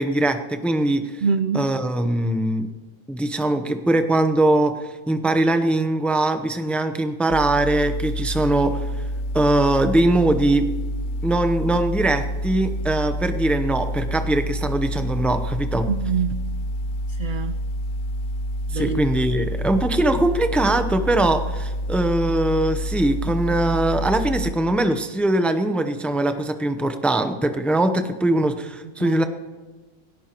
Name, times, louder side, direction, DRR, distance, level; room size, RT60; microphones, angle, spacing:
voice 1, 0.0-1.2 1.5-2.7 3.1-4.7 5.1-8.8 9.3-10.6 11.2-15.9 18.7-29.2, right 1 dB, ahead, 8 dB, 0.5 m, -21 dB
voice 2, 1.2-1.8 15.9-16.6 17.1-17.5 18.7-19.0 19.8-19.9 29.0-29.2, right 6 dB, 70° right, 11 dB, 0.5 m, -25 dB
sound 1, 7.3-24.5, equal, 45° left, 0.7 m, -28 dB
19.0 x 17.5 x 3.0 m, 1.3 s
omnidirectional pair, 1.4 m